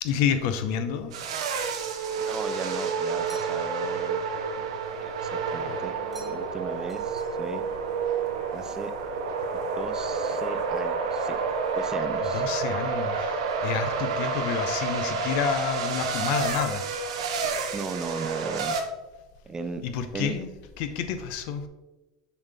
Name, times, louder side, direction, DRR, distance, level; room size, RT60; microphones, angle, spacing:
voice 1, 0.0-1.1 12.3-16.8 19.8-20.5 20.8-21.7, left 7 dB, 65° left, 9 dB, 0.7 m, -29 dB
sound 1, 1.1-18.8, right 5 dB, 90° right, 0.8 m, -29 dB
voice 2, 2.2-4.2 5.0-7.6 8.5-8.9 9.5-11.4 11.7-12.4 17.7-18.8 19.5-19.8 20.1-20.4, right 4 dB, 20° right, 9 dB, 0.5 m, -37 dB
sound 2, 3.3-3.9 6.1-6.6 6.9-7.6, right 2 dB, ahead, 1.5 m, -50 dB
7.0 x 4.1 x 3.4 m, 1.1 s
supercardioid pair, 115°, 3 cm